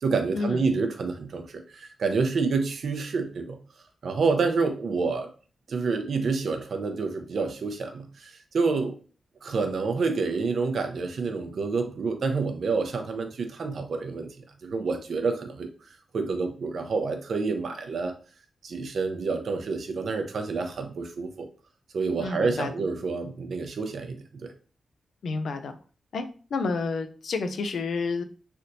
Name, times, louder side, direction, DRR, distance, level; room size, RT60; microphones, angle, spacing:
voice 1, 0.0-3.6 4.0-5.3 5.7-9.0 9.4-15.7 16.1-18.1 18.6-21.5 21.9-24.5, right 4 dB, 65° right, 5 dB, 0.5 m, -28 dB
voice 2, 22.2-22.7 25.2-25.8 26.1-26.2 26.5-28.2, left 4 dB, 80° left, 8 dB, 0.4 m, -29 dB
3.3 x 2.8 x 2.6 m, 0.38 s
wide cardioid pair, 125°, 0 cm